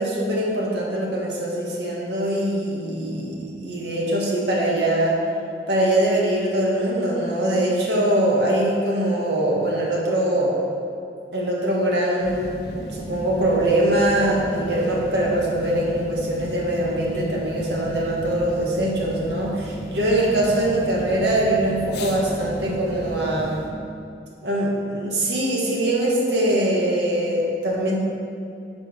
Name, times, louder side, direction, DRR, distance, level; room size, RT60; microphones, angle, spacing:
voice 1, 0.0-5.2 5.7-10.5 11.3-23.6 24.4-28.0, right 1 dB, 75° right, -3 dB, 1.8 m, -22 dB
sound 1, 12.2-23.7, equal, 75° left, 1.2 m, -34 dB
10.0 x 5.3 x 4.7 m, 2.6 s
head